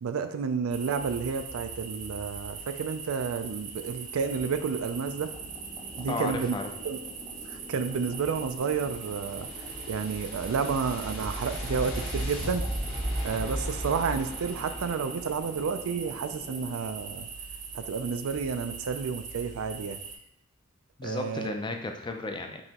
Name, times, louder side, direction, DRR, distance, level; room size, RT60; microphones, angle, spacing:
voice 1, 0.0-5.3 6.0-6.6 6.8-7.0 7.5-9.5 9.9-12.6 13.2-17.3 17.7-20.0 21.0-21.5, right 5 dB, 90° right, 9 dB, 0.4 m, -31 dB
sound 1, 0.7-20.2, right 5 dB, 35° right, 0.5 m, -41 dB
sound 2, 5.1-16.7, equal, 5° left, 0.8 m, -48 dB
voice 2, 6.1-6.7 21.0-22.6, left 2 dB, 20° left, 4 dB, 0.4 m, -34 dB
sound 3, 8.4-15.7, equal, 80° left, 1.5 m, -36 dB
5.4 x 2.9 x 2.9 m, 0.73 s
head